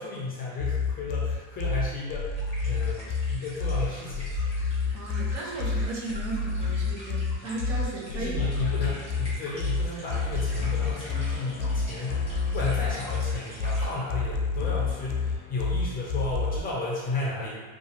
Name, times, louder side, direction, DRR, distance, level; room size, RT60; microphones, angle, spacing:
voice 1, 0.0-4.4 7.4-7.5 8.1-17.6, left 3 dB, 25° left, -5 dB, 0.4 m, -34 dB
sound 1, 0.6-16.6, left 4 dB, 85° left, 0.5 m, -29 dB
sound 2, 2.3-13.9, equal, 15° right, 1.2 m, -45 dB
voice 2, 4.9-8.5, right 2 dB, 60° right, -3 dB, 0.9 m, -35 dB
2.6 x 2.3 x 2.8 m, 1.4 s
supercardioid pair, 125°, 40 cm